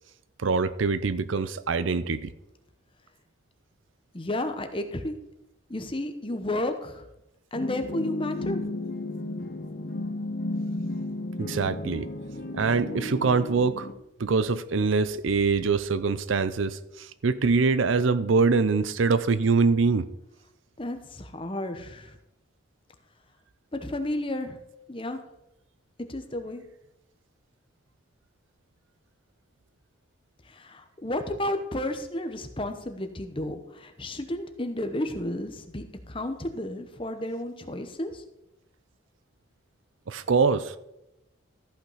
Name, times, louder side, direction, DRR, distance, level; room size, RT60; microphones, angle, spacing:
voice 1, 0.4-2.3 11.4-12.1 12.5-13.9 14.2-20.1 40.1-40.8, right 4 dB, 75° right, 13 dB, 0.6 m, -24 dB
voice 2, 4.1-5.1 5.7-7.0 7.5-8.6 20.8-22.2 23.7-24.6 24.9-25.2 26.1-26.6 30.5-38.2, left 1 dB, 25° left, 7 dB, 0.9 m, -32 dB
sound 1, 7.5-13.9, left 1 dB, 50° left, 1.0 m, -33 dB
14.0 x 5.8 x 5.7 m, 0.87 s
head